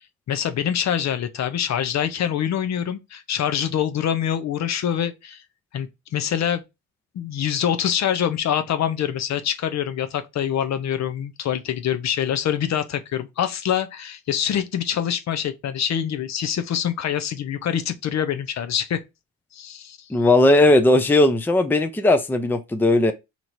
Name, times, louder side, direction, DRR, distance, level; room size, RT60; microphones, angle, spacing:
voice 1, 0.3-5.4 5.7-6.6 7.1-19.0 19.5-20.0, left 9 dB, 55° left, 0.6 m, -25 dB
voice 2, 20.1-23.1, left 2 dB, 5° left, 0.5 m, -17 dB
2.9 x 2.6 x 4.2 m
cardioid pair, 80°, 32 cm